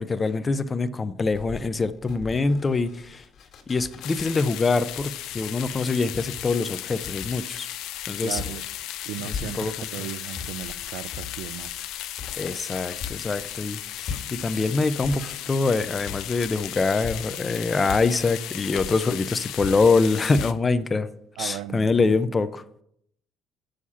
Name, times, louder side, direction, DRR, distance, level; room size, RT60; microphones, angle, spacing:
voice 1, 0.0-3.2 3.7-7.7 8.1-8.4 9.2-9.9 12.4-21.1 21.4-22.6, left 3 dB, 30° left, 0.6 m, -24 dB
sound 1, 1.2-10.0 10.3-20.5, left 6 dB, 60° left, 1.8 m, -40 dB
sound 2, 4.0-20.5, left 13 dB, 75° left, 0.5 m, -36 dB
voice 2, 8.2-8.6 9.0-11.7 21.4-22.2, right 13 dB, 80° right, 0.4 m, -36 dB
7.2 x 6.5 x 5.6 m
supercardioid pair, 85°, 0 cm